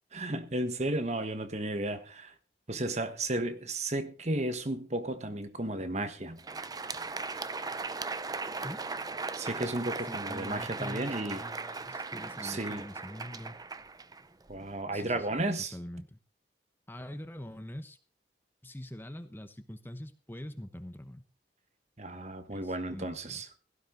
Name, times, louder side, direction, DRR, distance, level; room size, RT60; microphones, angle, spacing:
voice 1, 0.1-2.3 2.7-6.4 9.3-11.4 12.4-12.8 14.5-15.7 22.0-23.5, right 1 dB, 40° right, 1.3 m, -33 dB
Crowd, 6.3-14.7, right 4 dB, 20° right, 0.6 m, -38 dB
voice 2, 10.0-13.6 14.9-15.3 15.7-16.2 16.9-18.0 18.6-21.2 22.5-23.4, left 1 dB, 10° left, 0.9 m, -44 dB
16.5 x 12.5 x 3.9 m
head